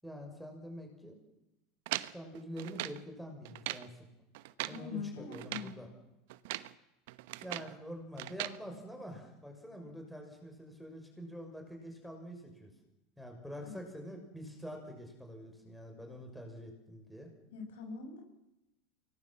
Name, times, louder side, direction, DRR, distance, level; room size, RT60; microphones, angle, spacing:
voice 1, 0.0-1.2 2.1-4.1 4.7-5.9 7.4-12.7 13.2-17.3, equal, ahead, 2 dB, 6.2 m, -46 dB
sound 1, 1.9-3.0 3.4-3.9 4.3-4.8 5.3-5.7 6.3-6.7 7.1-7.8 8.2-8.6, right 17 dB, 75° right, 1.0 m, -40 dB
voice 2, 4.7-5.7 13.6-13.9 17.5-18.2, left 5 dB, 85° left, 3 dB, 7.8 m, -42 dB
25.0 x 19.0 x 7.4 m, 0.92 s
supercardioid pair, 120°, 0 cm